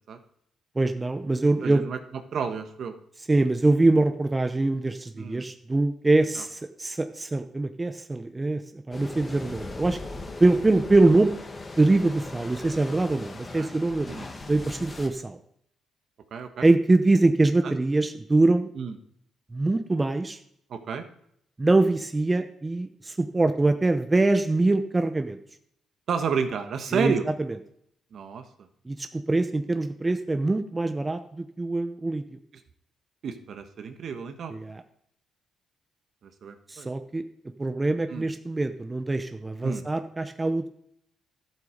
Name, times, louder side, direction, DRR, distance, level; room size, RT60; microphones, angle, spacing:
voice 1, 0.8-1.9 3.3-11.3 11.8-14.1 14.5-15.4 16.6-18.7 19.5-20.4 21.6-25.4 26.9-27.2 28.9-32.2 34.5-34.8 36.7-37.2 37.6-40.7, right 2 dB, 20° right, 8 dB, 0.8 m, -23 dB
voice 2, 1.6-2.0 2.3-2.9 5.2-5.5 6.4-6.5 13.6-13.7 14.1-14.3 16.3-16.7 17.6-17.8 18.8-19.0 20.7-21.0 26.1-27.2 28.1-28.4 33.2-34.5 36.2-36.9 38.1-38.3 39.6-39.8, right 6 dB, 60° right, 7 dB, 1.4 m, -31 dB
sound 1, 8.9-15.1, left 2 dB, 30° left, 1.8 m, -39 dB
12.0 x 7.9 x 5.1 m, 0.71 s
cardioid pair, 90°, 0 cm